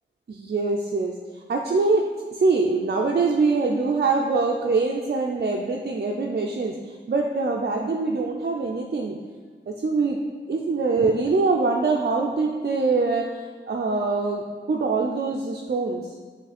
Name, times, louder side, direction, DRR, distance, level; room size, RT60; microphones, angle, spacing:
voice 1, 0.3-9.2 9.7-10.2 10.5-14.4 14.7-16.1, right 3 dB, 55° right, 0 dB, 0.5 m, -24 dB
7.4 x 3.2 x 4.2 m, 1.5 s
wide cardioid pair, 50°, 19 cm